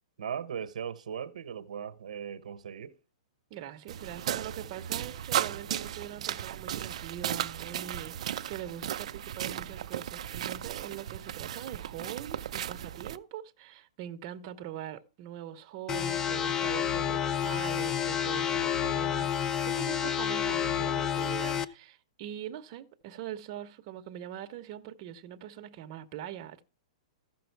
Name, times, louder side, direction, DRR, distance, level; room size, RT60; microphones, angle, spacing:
voice 1, 0.2-3.0, right 8 dB, 80° right, 0.9 m, -38 dB
voice 2, 3.5-26.6, right 11 dB, 35° right, 0.9 m, -42 dB
sound 1, 3.9-13.2, right 11 dB, 65° right, 0.5 m, -35 dB
sound 2, 15.9-21.6, left 9 dB, 15° left, 0.4 m, -29 dB
14.5 x 6.0 x 4.6 m
hypercardioid pair, 155°, 4 cm